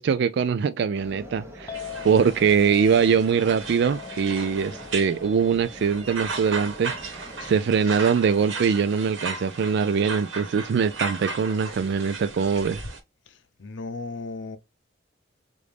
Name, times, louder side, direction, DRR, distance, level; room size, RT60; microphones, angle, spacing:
voice 1, 0.0-1.8 2.0-12.8, right 6 dB, 60° right, 0.3 m, -23 dB
sound 1, 0.9-7.5, left 1 dB, 15° right, 1.0 m, -44 dB
Chink clink, 1.7-8.0, left 10 dB, 20° left, 0.6 m, -43 dB
sound 2, 1.7-13.0, right 4 dB, 80° right, 1.2 m, -36 dB
voice 2, 13.3-14.6, left 3 dB, 65° left, 0.6 m, -36 dB
4.9 x 2.6 x 3.3 m
head